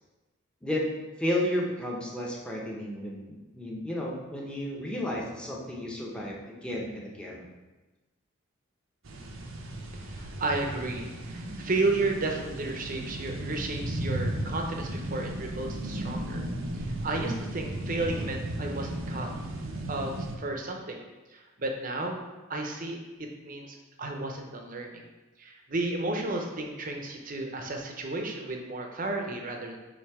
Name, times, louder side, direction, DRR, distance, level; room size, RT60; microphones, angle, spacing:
voice 1, 1.2-6.4 6.6-7.5, left 1 dB, 5° left, -3 dB, 0.8 m, -32 dB
sound 1, 9.0-20.4, right 1 dB, 70° right, 0.7 m, -35 dB
voice 2, 9.9-16.4 16.7-19.3 19.9-21.0 21.3-22.2 22.5-25.0 25.4-29.8, right 2 dB, 40° right, 2 dB, 0.7 m, -33 dB
7.2 x 2.8 x 4.7 m, 1.2 s
head